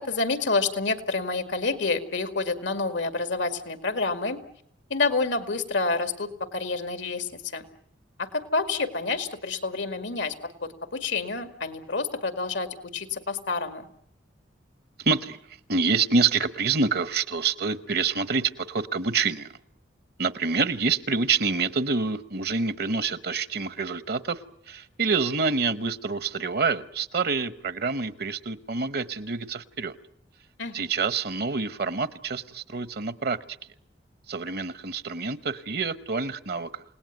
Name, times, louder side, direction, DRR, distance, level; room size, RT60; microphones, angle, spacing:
voice 1, 0.0-4.4 4.9-7.6 8.2-12.7 12.9-13.9 30.6-30.8, left 3 dB, 85° left, 9 dB, 2.2 m, -28 dB
voice 2, 15.0-15.4 15.7-19.5 20.2-24.4 24.7-29.9 30.7-33.4 34.3-36.8, right 4 dB, 55° right, 15 dB, 0.9 m, -27 dB
28.5 x 18.5 x 9.3 m, 0.75 s
head